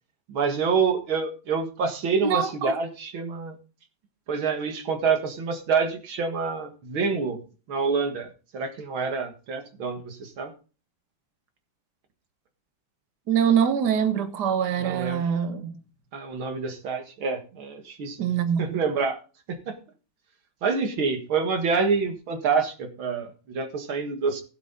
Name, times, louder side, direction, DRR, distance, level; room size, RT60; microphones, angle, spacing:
voice 1, 0.3-3.6 4.3-7.4 7.7-10.5 14.8-15.2 16.1-19.2 19.5-19.7 20.6-24.4, right 5 dB, 90° right, 2.6 m, -27 dB
voice 2, 2.2-2.7 13.3-15.7 18.2-18.8, right 8 dB, 60° right, 1.8 m, -24 dB
16.5 x 7.6 x 3.9 m
omnidirectional pair, 2.2 m